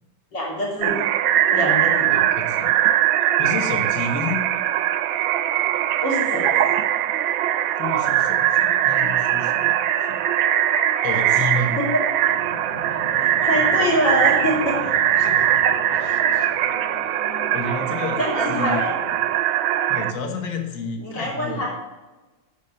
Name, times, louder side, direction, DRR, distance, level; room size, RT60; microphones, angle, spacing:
voice 1, 0.3-1.0 1.5-2.1 6.0-6.7 11.8-12.0 13.1-14.9 18.2-18.9 21.0-21.7, equal, 65° left, -4 dB, 3.9 m, -24 dB
sound 1, 0.8-20.1, right 11 dB, 85° right, 1.4 m, -21 dB
voice 2, 2.1-2.8 3.4-4.4 7.8-10.2 11.0-11.8 15.2-16.6 17.0-17.2 17.5-18.2 18.5-18.8 19.9-21.7, left 3 dB, 50° left, 5 dB, 1.5 m, -30 dB
Fixed-wing aircraft airplane, 12.3-19.3, left 3 dB, 30° left, 0.7 m, -39 dB
9.3 x 6.1 x 6.5 m, 1.2 s
omnidirectional pair, 2.1 m